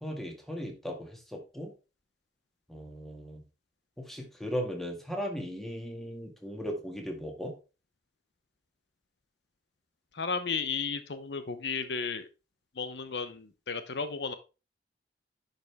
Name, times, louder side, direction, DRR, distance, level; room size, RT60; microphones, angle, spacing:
voice 1, 0.0-1.7 2.7-3.4 4.0-7.5, equal, ahead, 1 dB, 2.0 m, -37 dB
voice 2, 10.1-12.3 12.8-14.3, left 5 dB, 70° left, 10 dB, 0.8 m, -34 dB
10.5 x 5.4 x 3.5 m, 0.30 s
head